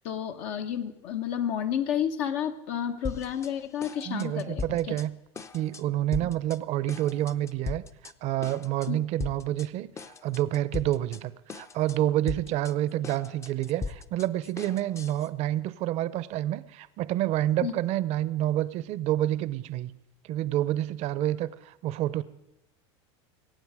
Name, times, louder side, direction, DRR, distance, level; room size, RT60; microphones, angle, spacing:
voice 1, 0.0-4.8 6.2-6.3 8.9-9.0 17.6-17.7, left 9 dB, 65° left, 5 dB, 1.1 m, -31 dB
sound 1, 3.0-3.5 3.8-5.1 5.3-5.8 6.1-6.6 6.9-8.1 8.4-8.9 9.2-9.7 10.0-11.2 11.5-12.0 12.3-15.3, left 4 dB, 20° left, 0.6 m, -38 dB
voice 2, 4.1-5.1 5.5-9.9 10.2-19.9 20.3-22.2, right 13 dB, 50° right, 17 dB, 0.7 m, -28 dB
22.0 x 9.1 x 4.9 m, 0.91 s
supercardioid pair, 115°, 14 cm